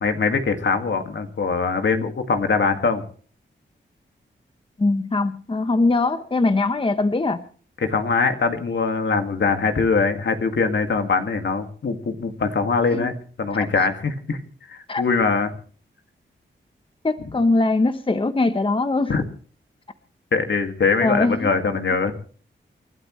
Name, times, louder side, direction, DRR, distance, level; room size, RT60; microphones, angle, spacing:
voice 1, 0.0-3.1 7.8-13.1 13.4-15.5 19.1-19.2 20.3-22.1, left 4 dB, 65° left, 6 dB, 2.0 m, -22 dB
voice 2, 4.8-7.4 12.9-13.1 13.8-13.9 14.9-15.0 17.0-19.1 21.0-21.9, left 2 dB, 25° left, 10 dB, 0.9 m, -22 dB
29.0 x 12.5 x 3.1 m, 0.43 s
wide cardioid pair, 85°, 20 cm